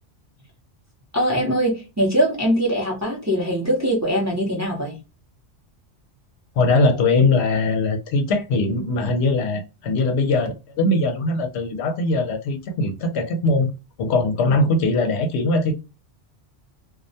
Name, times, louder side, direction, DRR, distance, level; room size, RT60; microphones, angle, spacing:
voice 1, 1.1-5.0, equal, 20° right, 0.5 m, -22 dB
voice 2, 6.6-13.7 14.0-15.7, left 2 dB, 70° left, 0.8 m, -21 dB
2.3 x 2.1 x 2.6 m
omnidirectional pair, 1.2 m